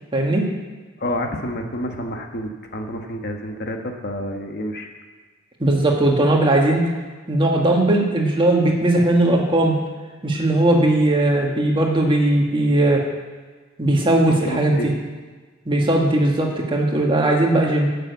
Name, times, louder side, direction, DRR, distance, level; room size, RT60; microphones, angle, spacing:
voice 1, 0.1-0.5 5.6-6.8 7.3-9.8 10.2-13.0 13.8-14.9 15.7-17.9, right 1 dB, 25° right, 0 dB, 1.7 m, -18 dB
voice 2, 1.0-4.9 14.3-14.9, left 1 dB, 50° left, 3 dB, 1.2 m, -29 dB
12.0 x 6.7 x 8.2 m, 1.4 s
head